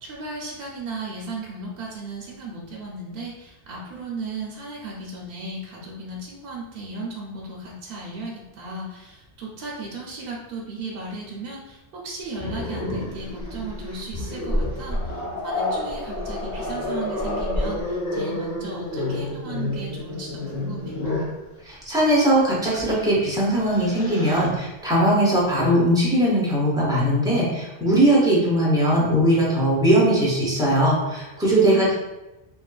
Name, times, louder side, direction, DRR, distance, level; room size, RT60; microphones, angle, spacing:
voice 1, 0.0-20.9 31.5-31.9, right 2 dB, 65° right, -3 dB, 0.7 m, -35 dB
Growling, 12.4-21.4 22.7-22.9 23.3-24.5, left 1 dB, 45° left, 0.8 m, -29 dB
voice 2, 21.7-31.9, right 1 dB, 5° right, -6 dB, 0.5 m, -20 dB
2.7 x 2.4 x 2.2 m, 1.0 s
omnidirectional pair, 1.1 m